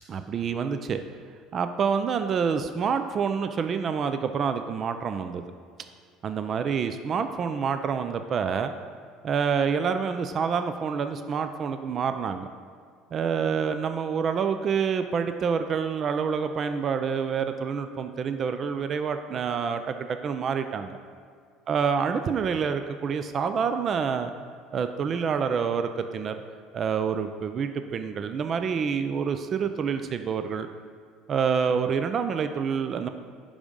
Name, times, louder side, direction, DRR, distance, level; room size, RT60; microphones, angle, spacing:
voice 1, 0.1-1.0 1.5-5.4 6.2-8.7 9.2-12.5 13.1-21.0 21.7-24.3 24.7-26.4 26.7-30.7 31.3-33.1, right 6 dB, 45° right, 8 dB, 0.4 m, -27 dB
9.8 x 3.7 x 5.3 m, 2.1 s
supercardioid pair, 85°, 0 cm